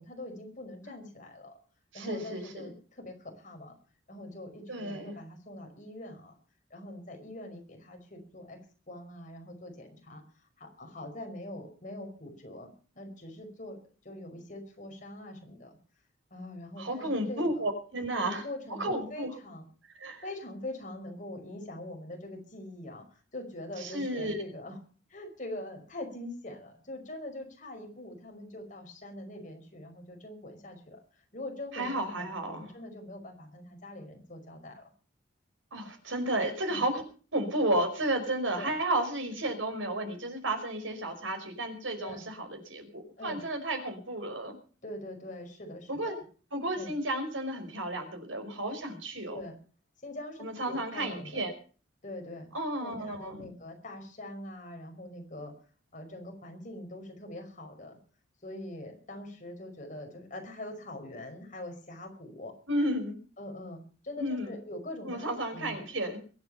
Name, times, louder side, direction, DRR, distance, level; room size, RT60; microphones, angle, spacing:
voice 1, 0.0-1.5 1.9-3.8 4.1-6.3 6.7-8.6 8.9-10.2 10.6-13.8 14.0-15.8 16.3-17.5 18.1-19.6 20.2-24.8 25.1-34.9 36.7-36.8 38.6-38.7 42.0-42.2 43.2-43.4 44.8-46.2 46.7-46.9 49.3-49.6 50.0-51.4 52.0-52.5 52.8-55.5 55.9-58.0 58.4-62.5 63.4-65.8, left 1 dB, 40° left, 3 dB, 5.3 m, -43 dB
voice 2, 1.9-2.7 4.7-5.2 16.8-18.4 18.8-19.3 20.0-20.2 23.8-24.4 31.7-32.7 35.7-37.0 37.3-44.5 45.9-46.2 46.5-49.4 50.4-51.5 52.5-53.4 62.7-63.2 64.2-64.5 65.0-66.2, right 1 dB, 90° right, 6 dB, 5.3 m, -32 dB
22.5 x 9.7 x 5.7 m, 0.40 s
head